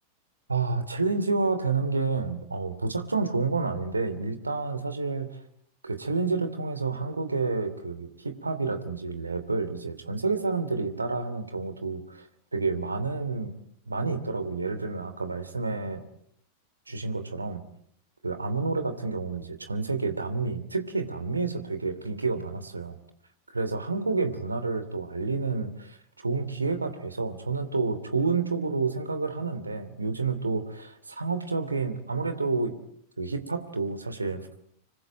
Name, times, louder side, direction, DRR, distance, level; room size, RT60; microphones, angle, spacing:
voice 1, 0.5-5.4 5.8-12.3 12.5-13.5 13.9-16.0 16.9-17.6 18.2-23.0 23.5-32.7 33.2-34.4, right 4 dB, 80° right, 10 dB, 2.7 m, -29 dB
26.5 x 24.0 x 9.1 m, 0.68 s
figure-of-eight pair, 90°, 0 cm